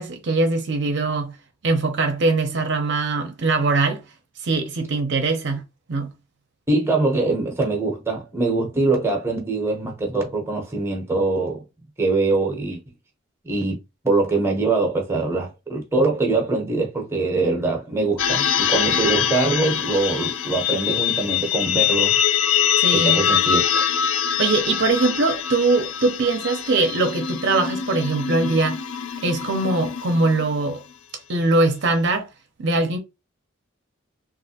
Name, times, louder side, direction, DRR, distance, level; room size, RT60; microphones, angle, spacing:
voice 1, 0.0-1.4 1.6-4.0 4.4-5.6 5.9-6.1 22.8-23.3 24.4-28.8 29.2-30.8 31.3-32.3 32.6-33.0, right 3 dB, 55° right, 0.6 m, -21 dB
voice 2, 6.7-11.6 12.0-12.8 13.4-13.8 14.0-22.2 22.9-23.8, right 3 dB, 10° right, 0.7 m, -23 dB
sound 1, 18.2-30.7, left 9 dB, 65° left, 0.3 m, -23 dB
3.2 x 2.4 x 2.7 m
head